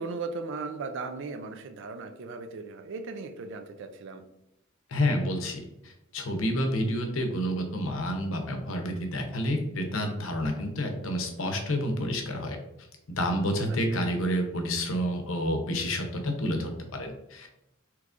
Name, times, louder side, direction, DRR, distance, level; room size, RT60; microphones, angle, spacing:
voice 1, 0.0-4.2 13.9-14.0, right 4 dB, 65° right, 8 dB, 0.4 m, -37 dB
voice 2, 4.9-12.6 13.2-17.5, equal, 70° left, 4 dB, 0.7 m, -29 dB
3.5 x 3.1 x 2.5 m, 0.86 s
head